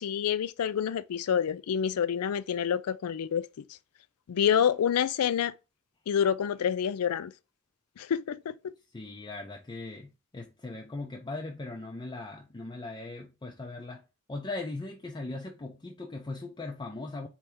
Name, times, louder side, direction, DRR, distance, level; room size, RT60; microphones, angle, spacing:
voice 1, 0.0-3.5 4.3-5.5 6.1-7.3 8.0-8.7, left 8 dB, 80° left, 0.4 m, -27 dB
voice 2, 8.9-14.0 14.3-17.3, left 2 dB, 20° left, 0.4 m, -39 dB
4.3 x 2.7 x 3.4 m
head